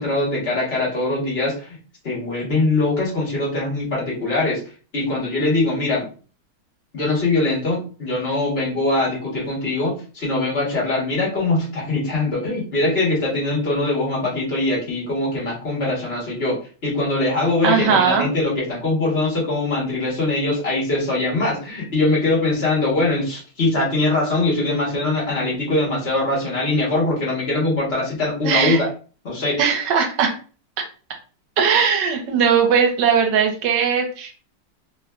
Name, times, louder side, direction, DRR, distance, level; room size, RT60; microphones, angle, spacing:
voice 1, 0.0-1.8 2.0-4.6 4.9-6.1 6.9-28.9 29.2-29.6, left 2 dB, 40° left, -5 dB, 1.2 m, -22 dB
voice 2, 17.6-18.3 28.4-28.8 29.6-30.3 31.6-34.3, right 6 dB, 75° right, 4 dB, 1.3 m, -18 dB
3.1 x 2.4 x 2.2 m, 0.38 s
omnidirectional pair, 2.0 m